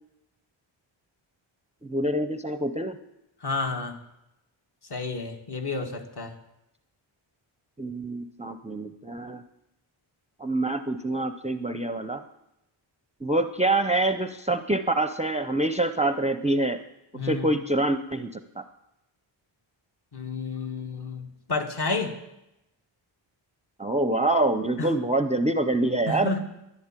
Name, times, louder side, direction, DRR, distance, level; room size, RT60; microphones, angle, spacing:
voice 1, 1.8-3.0 7.8-9.4 10.4-12.2 13.2-16.8 17.2-18.6 23.8-26.3, right 2 dB, 15° right, 10 dB, 0.5 m, -26 dB
voice 2, 3.4-3.9 4.9-6.3 17.1-17.5 20.1-22.1 24.8-24.9 26.1-26.5, left 3 dB, 50° left, 4 dB, 1.9 m, -30 dB
12.0 x 11.0 x 8.8 m, 0.88 s
wide cardioid pair, 175°, 49 cm